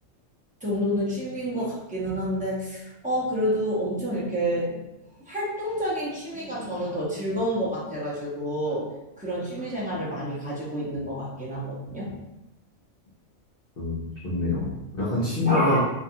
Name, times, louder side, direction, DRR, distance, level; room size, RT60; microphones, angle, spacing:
voice 1, 0.6-4.8 5.2-8.9 9.2-12.1 15.4-15.8, equal, 10° right, -8 dB, 0.4 m, -29 dB
voice 2, 13.8-15.8, left 2 dB, 50° left, -8 dB, 0.8 m, -26 dB
2.6 x 2.4 x 2.7 m, 0.97 s
omnidirectional pair, 1.4 m